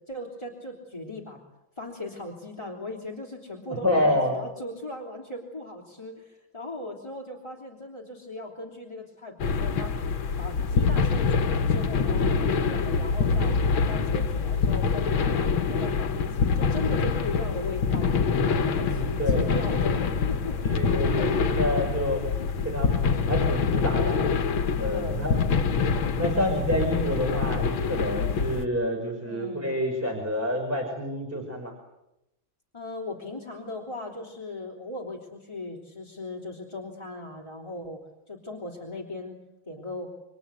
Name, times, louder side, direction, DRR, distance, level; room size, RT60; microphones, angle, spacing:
voice 1, 0.1-1.4 1.8-10.0 10.4-18.2 18.6-20.8 21.1-21.6 24.8-25.9 29.2-29.7 32.7-38.0 38.3-39.4 39.7-40.1, left 2 dB, 15° left, -1 dB, 3.5 m, -38 dB
voice 2, 3.8-4.3 18.6-19.5 20.6-22.2 22.6-22.9 23.2-24.2 24.8-25.4 26.2-31.7, left 1 dB, 5° right, 1 dB, 5.3 m, -28 dB
sound 1, 9.4-28.6, left 5 dB, 80° left, 2.1 m, -25 dB
29.5 x 24.0 x 8.0 m, 0.88 s
omnidirectional pair, 2.2 m